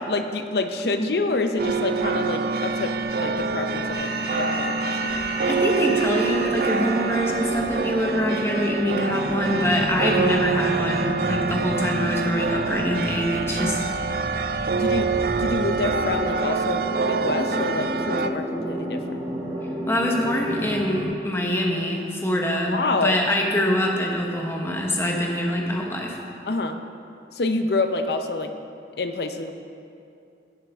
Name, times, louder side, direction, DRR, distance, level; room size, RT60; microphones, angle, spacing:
voice 1, 0.0-5.2 13.6-13.8 14.7-19.2 22.7-23.2 26.4-26.8 27.3-28.5 29.0-29.5, left 3 dB, 65° left, 7 dB, 0.6 m, -27 dB
sound 1, 1.6-18.3, right 4 dB, 55° right, 0.4 m, -26 dB
sound 2, 3.9-21.0, right 1 dB, 20° right, 1.9 m, -32 dB
voice 2, 5.5-13.8 19.9-26.2, equal, 15° left, 0 dB, 1.0 m, -24 dB
16.0 x 7.5 x 3.5 m, 2.6 s
head